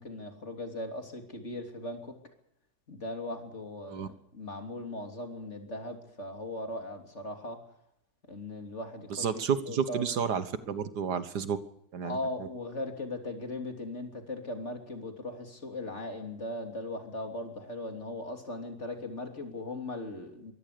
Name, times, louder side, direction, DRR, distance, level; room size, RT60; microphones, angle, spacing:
voice 1, 0.0-2.1 2.9-7.6 8.3-9.3 9.6-10.0 12.0-20.5, left 2 dB, 40° left, 4 dB, 3.5 m, -38 dB
voice 2, 9.1-11.6 11.9-12.2, right 7 dB, 70° right, 12 dB, 1.8 m, -31 dB
23.5 x 17.0 x 6.8 m, 0.78 s
omnidirectional pair, 1.9 m